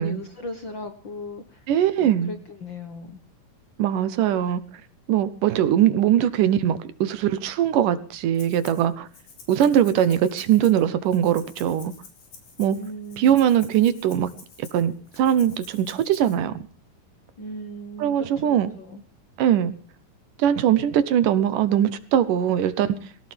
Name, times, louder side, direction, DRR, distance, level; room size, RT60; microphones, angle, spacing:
voice 1, 0.0-1.6 2.0-3.2 12.7-13.4 17.4-19.0, left 1 dB, 50° left, 7 dB, 1.5 m, -37 dB
voice 2, 1.7-2.3 3.8-4.6 5.1-9.1 9.5-11.9 12.6-12.8 13.2-14.3 14.6-16.6 18.0-18.7 19.4-19.8 20.4-23.1, right 10 dB, 75° right, 14 dB, 2.5 m, -21 dB
Rattle (instrument), 8.3-8.8 9.1-16.3, left 5 dB, 75° left, 5.7 m, -48 dB
22.0 x 17.5 x 3.4 m, 0.38 s
omnidirectional pair, 4.0 m